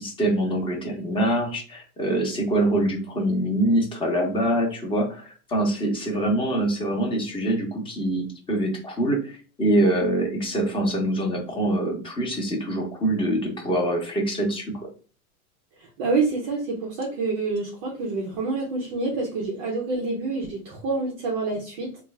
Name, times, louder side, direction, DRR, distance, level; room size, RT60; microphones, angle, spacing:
voice 1, 0.0-14.7, right 1 dB, 10° left, 1 dB, 0.7 m, -24 dB
voice 2, 15.8-21.9, right 3 dB, 25° right, 0 dB, 0.4 m, -27 dB
3.2 x 2.3 x 3.2 m, 0.38 s
supercardioid pair, 135°, 47 cm